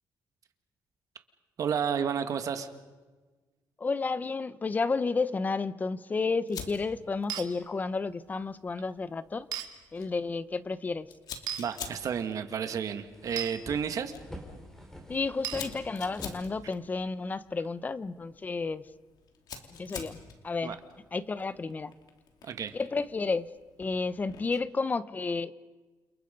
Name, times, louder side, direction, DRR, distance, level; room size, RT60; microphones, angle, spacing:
voice 1, 1.6-2.7 11.6-14.1 20.6-20.8 22.4-22.7, right 7 dB, 55° right, 7 dB, 2.1 m, -31 dB
voice 2, 3.8-9.5 9.9-11.1 15.1-18.8 19.7-20.2 20.4-20.8 21.1-21.9 22.7-23.5 23.8-25.5, left 4 dB, 25° left, 15 dB, 0.8 m, -31 dB
Fire, 6.5-24.7, left 7 dB, 70° left, 3.1 m, -49 dB
sound 1, 7.3-7.5 9.5-9.7 11.5-11.6 13.4-13.5 15.4-15.7, right 10 dB, 85° right, 2.5 m, -34 dB
sound 2, 12.5-12.6 12.9-17.1, equal, 5° left, 4.7 m, -47 dB
29.5 x 28.5 x 5.4 m, 1.3 s
cardioid pair, 140°, 7 cm